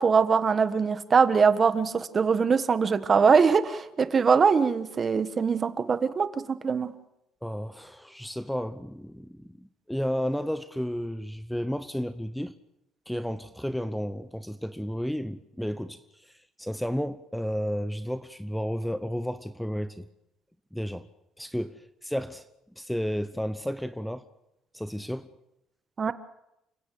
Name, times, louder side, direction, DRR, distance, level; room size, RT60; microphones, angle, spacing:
voice 1, 0.0-6.9 26.0-26.1, right 5 dB, 30° right, 1.4 m, -22 dB
voice 2, 7.4-12.5 13.1-20.1 20.7-21.1 21.4-22.5 22.8-24.2 24.7-25.3, equal, ahead, 0.8 m, -32 dB
29.0 x 16.5 x 7.8 m
cardioid pair, 125°, 0 cm